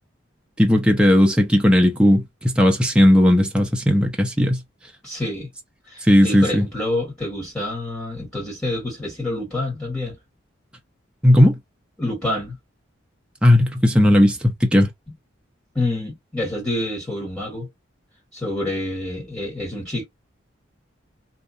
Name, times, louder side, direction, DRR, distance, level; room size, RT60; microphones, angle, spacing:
voice 1, 0.6-4.6 6.0-6.6 11.2-11.6 13.4-14.9, left 1 dB, 5° right, 0.6 m, -16 dB
voice 2, 5.0-5.5 5.9-10.2 12.0-12.6 15.8-17.7 18.3-20.0, left 1 dB, 10° left, 1.6 m, -27 dB
2.8 x 2.4 x 2.4 m
head